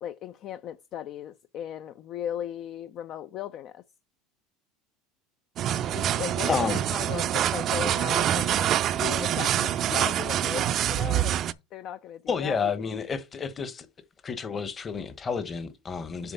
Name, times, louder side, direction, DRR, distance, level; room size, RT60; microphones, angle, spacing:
voice 1, 0.0-3.8 5.9-11.4 11.7-12.7 16.2-16.3, left 10 dB, 50° left, 0.4 m, -37 dB
sound 1, 5.6-11.5, right 11 dB, 45° right, 0.4 m, -26 dB
voice 2, 6.5-6.8 12.3-13.9 14.2-16.3, left 5 dB, 25° left, 1.0 m, -30 dB
7.1 x 3.4 x 5.5 m
supercardioid pair, 110°, 0 cm